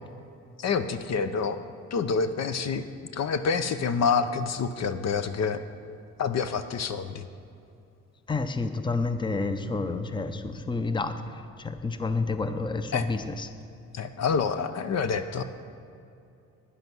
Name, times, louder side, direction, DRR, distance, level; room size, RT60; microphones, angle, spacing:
voice 1, 0.6-1.6 1.9-2.8 3.1-5.6 6.2-7.2 12.9-13.0 13.9-15.4, left 5 dB, 60° left, 10 dB, 0.7 m, -27 dB
voice 2, 8.3-11.1 11.6-13.5, left 3 dB, 15° left, 9 dB, 0.6 m, -29 dB
10.5 x 9.9 x 6.1 m, 2.6 s
cardioid pair, 90°, 30 cm